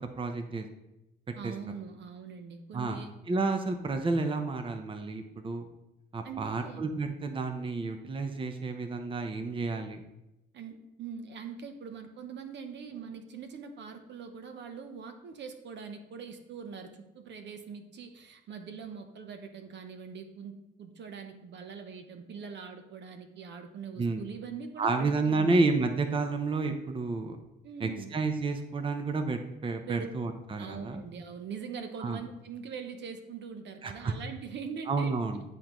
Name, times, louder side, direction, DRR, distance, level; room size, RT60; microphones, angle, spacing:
voice 1, 0.2-0.7 1.4-1.5 2.7-3.0 3.3-5.6 6.1-10.0 24.0-24.2 24.8-27.4 27.8-31.0 32.0-32.2 33.8-34.1 34.9-35.4, right 3 dB, 25° right, 6 dB, 0.6 m, -30 dB
voice 2, 1.4-3.1 6.2-6.9 10.5-25.8 27.6-28.1 29.9-30.1 30.6-35.1, right 6 dB, 65° right, 6 dB, 0.8 m, -42 dB
10.0 x 3.7 x 3.0 m, 0.94 s
cardioid pair, 90°, 20 cm